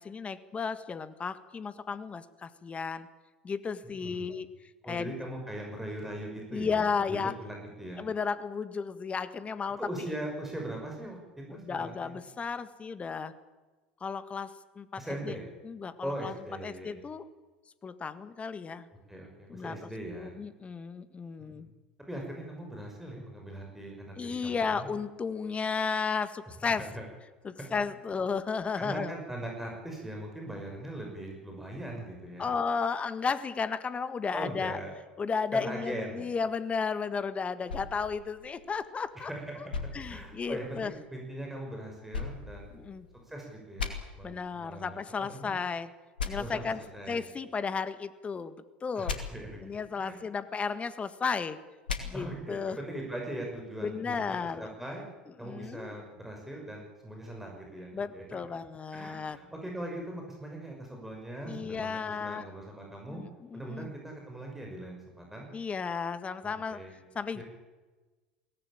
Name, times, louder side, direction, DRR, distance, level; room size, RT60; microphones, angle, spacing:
voice 1, 0.0-3.1 3.4-4.5 4.8-5.1 6.5-7.4 8.0-9.8 11.5-13.4 14.0-15.4 15.6-16.3 16.6-17.3 17.8-18.9 19.5-19.9 20.1-21.7 24.2-26.9 27.4-29.1 32.4-34.8 35.2-39.3 39.9-40.9 42.7-43.1 44.2-45.9 46.2-46.8 47.1-48.6 48.8-49.2 49.6-51.6 52.0-52.8 53.8-54.7 55.4-55.9 57.9-59.4 61.4-62.5 63.1-63.9 65.5-66.8 67.1-67.4, left 5 dB, 25° left, 12 dB, 1.7 m, -34 dB
voice 2, 4.0-4.4 4.8-8.0 9.8-11.2 11.5-12.2 15.0-15.4 16.0-17.0 19.1-20.3 21.5-21.6 22.1-24.9 26.8-27.0 27.6-27.7 28.8-32.5 34.3-34.9 35.5-36.2 39.2-39.6 40.1-42.7 43.3-45.5 46.3-47.3 49.0-49.6 50.0-50.2 52.1-55.1 55.4-58.4 58.9-63.2 63.5-65.5 66.4-67.0 67.3-67.4, right 1 dB, 5° right, 0 dB, 6.1 m, -40 dB
sound 1, 37.7-39.1 39.7-40.9 42.1-43.3 43.8-43.9 46.2-46.3 49.1-49.2 51.9-52.0, left 6 dB, 80° left, 2.5 m, -37 dB
23.0 x 18.0 x 8.9 m, 1.2 s
figure-of-eight pair, 70°, 5 cm